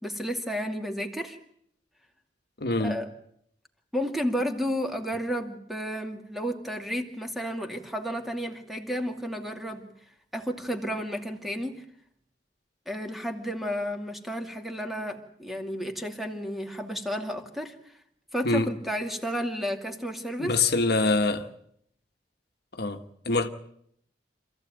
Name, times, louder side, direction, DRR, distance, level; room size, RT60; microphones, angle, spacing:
voice 1, 0.0-1.4 2.8-3.1 3.9-9.8 10.3-11.8 12.9-17.7 18.3-20.5, equal, ahead, 2.5 m, -32 dB
voice 2, 2.6-3.0 18.4-18.7 20.4-21.5 22.7-23.5, left 3 dB, 65° left, 1.4 m, -25 dB
26.5 x 15.0 x 9.2 m
head